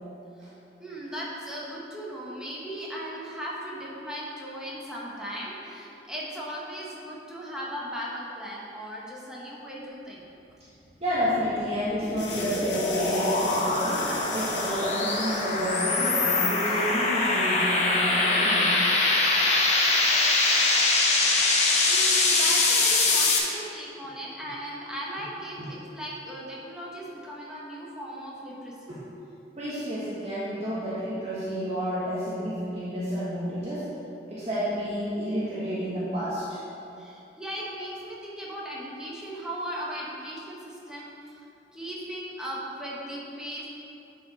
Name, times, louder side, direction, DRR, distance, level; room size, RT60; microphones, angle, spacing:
voice 1, 0.8-10.2 21.8-28.9 37.0-41.5 41.7-43.7, equal, 5° right, -6 dB, 1.3 m, -37 dB
voice 2, 11.0-18.8 25.6-25.7 28.9-29.0 29.6-33.9 34.3-36.6, equal, 35° right, -10 dB, 1.4 m, -30 dB
sound 1, 11.4-23.4, left 3 dB, 40° left, 1.0 m, -23 dB
sound 2, 12.2-17.9, left 3 dB, 75° left, 1.2 m, -38 dB
10.5 x 4.8 x 4.2 m, 2.7 s
head